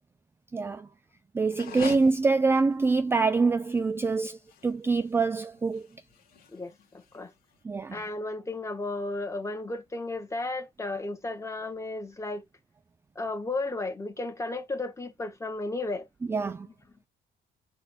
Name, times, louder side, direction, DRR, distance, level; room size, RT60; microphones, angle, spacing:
voice 1, 0.5-0.9 1.3-4.4 4.6-5.9 7.6-8.0 16.3-16.7, right 4 dB, 15° right, 0.3 m, -25 dB
sound 1, 1.4-7.6, left 8 dB, 60° left, 1.4 m, -45 dB
voice 2, 6.5-7.3 7.9-12.4 13.1-16.1, left 2 dB, 15° left, 1.3 m, -34 dB
3.9 x 2.6 x 4.4 m
cardioid pair, 110°, 17 cm